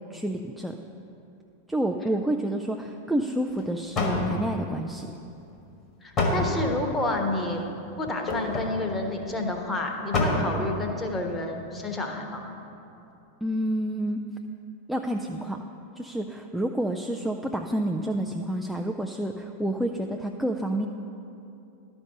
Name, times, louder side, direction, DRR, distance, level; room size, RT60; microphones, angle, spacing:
voice 1, 0.1-0.8 1.7-5.1 13.4-14.2 14.9-15.6 16.0-20.9, right 1 dB, ahead, 2 dB, 0.4 m, -29 dB
sound 1, 3.6-3.7 4.0-4.7 6.2-6.8 8.3-8.7 9.2-9.3 9.5-9.6 10.1-10.7 11.1-11.2, left 2 dB, 30° left, 1.5 m, -26 dB
voice 2, 6.0-7.6 8.0-12.5, left 2 dB, 15° left, 2 dB, 1.2 m, -29 dB
11.5 x 5.3 x 7.4 m, 2.8 s
figure-of-eight pair, 90°, 0 cm